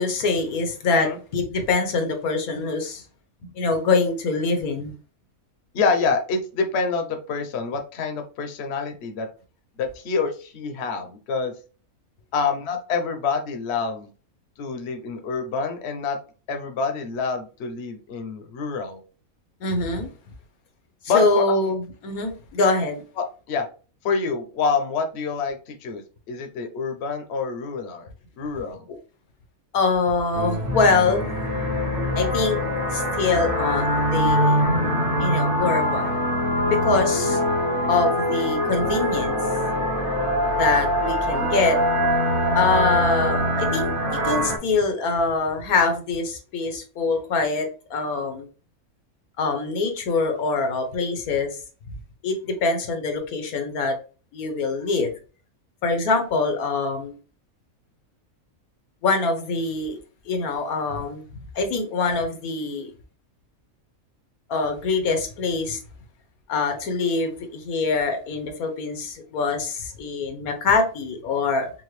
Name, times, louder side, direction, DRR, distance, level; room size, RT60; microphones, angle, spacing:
voice 1, 0.0-3.0 3.5-4.9 19.6-20.1 21.1-23.0 29.7-31.3 32.1-32.6 32.9-34.6 35.2-36.2 36.7-37.4 37.9-39.4 40.6-41.8 42.5-43.9 44.2-48.5 49.4-51.6 52.2-53.9 54.3-55.1 55.8-57.2 59.0-60.0 60.3-61.2 61.5-62.9 64.5-65.8 66.5-71.7, left 4 dB, 85° left, 5 dB, 1.4 m, -24 dB
voice 2, 5.7-9.3 9.8-11.5 12.3-14.1 14.6-16.2 16.5-19.0 21.1-21.7 23.2-23.6 24.0-28.1 28.4-28.9 41.6-41.7, left 4 dB, 55° left, 5 dB, 1.0 m, -27 dB
sound 1, 30.3-44.6, equal, 40° right, 1.1 m, -23 dB
5.7 x 2.6 x 3.2 m, 0.36 s
omnidirectional pair, 1.5 m